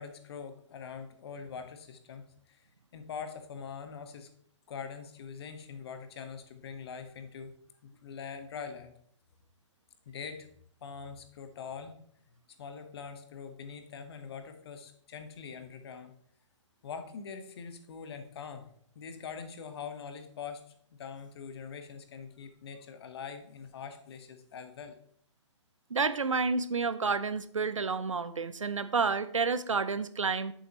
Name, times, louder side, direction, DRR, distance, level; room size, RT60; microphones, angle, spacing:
voice 1, 0.0-2.6 2.9-4.3 4.7-7.5 7.8-8.9 10.1-10.5 10.8-11.9 12.6-16.1 16.8-18.7 18.9-20.7 21.0-25.0, left 6 dB, 55° left, 8 dB, 1.2 m, -43 dB
voice 2, 25.9-30.5, right 4 dB, 90° right, 13 dB, 0.7 m, -30 dB
8.2 x 7.1 x 3.0 m, 0.64 s
figure-of-eight pair, 130°, 16 cm